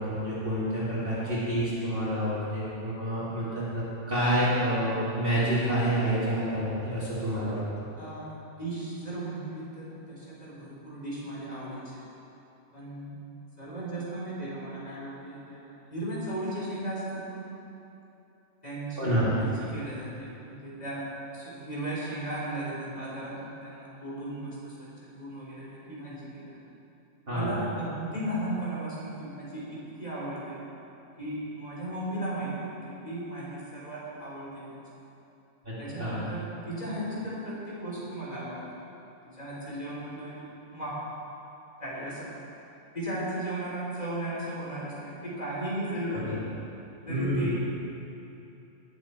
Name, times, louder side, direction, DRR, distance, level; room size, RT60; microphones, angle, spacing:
voice 1, 0.0-7.6 19.0-19.3 27.3-27.5 35.6-36.3 46.1-46.4 47.1-47.5, equal, 45° right, -11 dB, 2.9 m, -28 dB
voice 2, 8.0-12.0 12.7-13.2 13.6-17.4 18.6-26.6 27.3-30.6 31.2-34.8 35.8-38.6 39.2-41.0 41.8-42.3 42.9-46.4 47.1-47.6, right 1 dB, 30° left, -7 dB, 3.6 m, -36 dB
19.0 x 7.9 x 4.4 m, 2.9 s
omnidirectional pair, 1.3 m